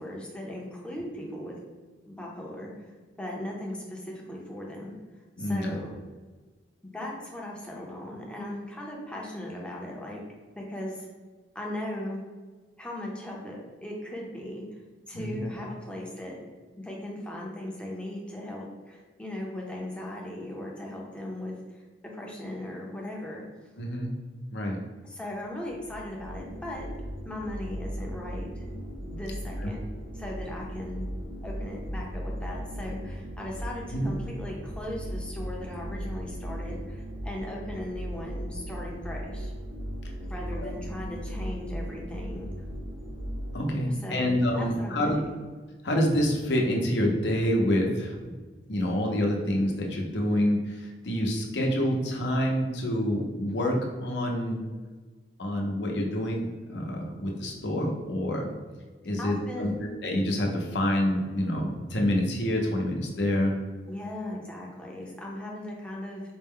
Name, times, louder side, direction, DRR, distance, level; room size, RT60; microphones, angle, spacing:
voice 1, 0.0-1.5 2.0-2.8 3.2-4.9 5.4-5.9 6.8-10.2 10.6-11.1 11.5-12.2 12.8-14.6 15.1-16.4 16.8-21.8 22.1-23.4 25.0-26.9 27.2-28.7 29.0-29.9 30.1-31.1 31.4-39.5 40.3-42.5 43.9-45.4 59.2-59.8 63.9-66.2, left 1 dB, 5° left, -3 dB, 0.6 m, -38 dB
voice 2, 5.4-5.8 15.1-15.4 23.8-24.2 24.5-24.8 29.6-29.7 33.9-34.1 40.6-40.7 43.5-45.2 45.8-48.1 48.7-54.6 55.4-58.5 59.0-63.5, equal, 70° left, 0 dB, 0.7 m, -27 dB
sound 1, 25.5-43.6, equal, 75° right, 0.7 m, -37 dB
4.3 x 2.1 x 3.6 m, 1.4 s
head